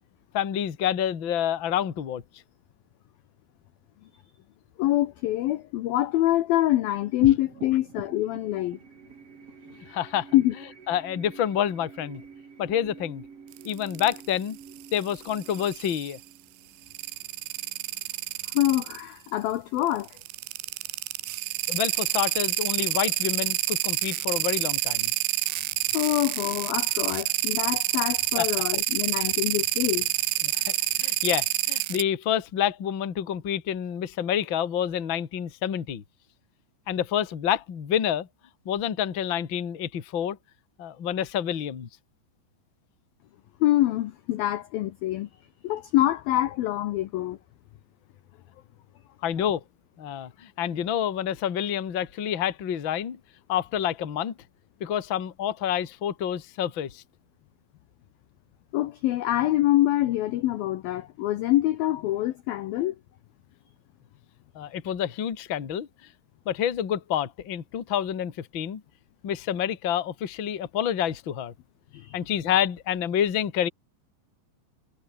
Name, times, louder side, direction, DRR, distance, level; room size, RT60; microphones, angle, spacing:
voice 1, 0.3-2.2 9.9-10.3 10.9-12.2 12.6-13.2 13.6-14.6 14.9-16.2 21.7-25.1 28.3-28.4 30.4-36.0 36.9-38.3 38.6-40.4 40.8-41.9 49.2-49.6 50.0-53.2 53.5-54.3 54.8-57.0 64.5-65.9 66.4-68.8 69.2-71.5 72.1-73.7, left 10 dB, 45° left, 1.6 m, -28 dB
voice 2, 4.8-8.8 10.3-10.5 18.5-20.1 25.9-30.1 43.6-45.3 45.6-47.4 58.7-63.0 71.9-72.2, left 14 dB, 75° left, 2.2 m, -25 dB
sound 1, 7.2-17.9, right 6 dB, 35° right, 3.3 m, -46 dB
sound 2, 13.5-14.2 14.8-16.2 16.9-19.0 20.1-32.0, right 18 dB, 80° right, 3.0 m, -28 dB
omnidirectional pair, 5.5 m